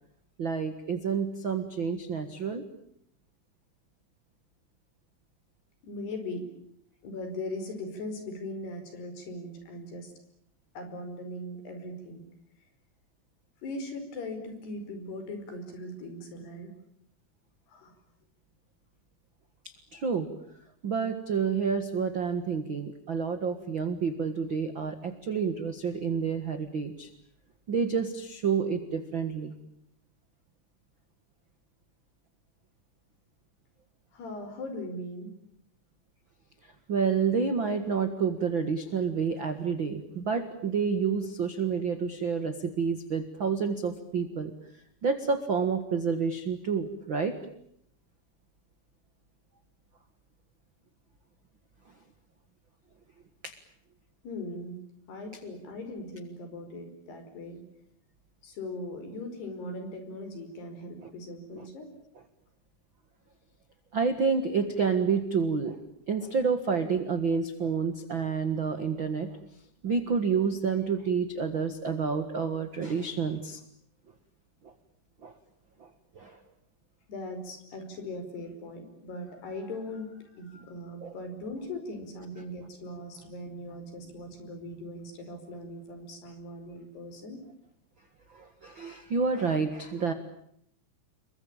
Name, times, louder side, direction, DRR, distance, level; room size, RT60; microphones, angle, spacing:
voice 1, 0.4-2.6 19.9-20.3 20.8-27.1 27.7-29.5 36.9-44.5 45.0-47.4 53.4-53.5 61.6-61.7 63.9-65.8 66.1-69.3 69.8-73.6 75.2-75.3 75.8-75.9 76.1-76.4 81.0-81.1 88.3-90.1, right 5 dB, 60° right, 9 dB, 1.2 m, -29 dB
voice 2, 5.8-6.4 7.0-10.1 10.8-12.3 13.6-16.7 17.7-17.9 34.1-35.3 54.2-54.8 55.1-57.6 58.4-61.9 77.1-87.4, left 1 dB, 65° left, 7 dB, 7.0 m, -39 dB
28.5 x 23.0 x 8.9 m, 0.71 s
omnidirectional pair, 5.0 m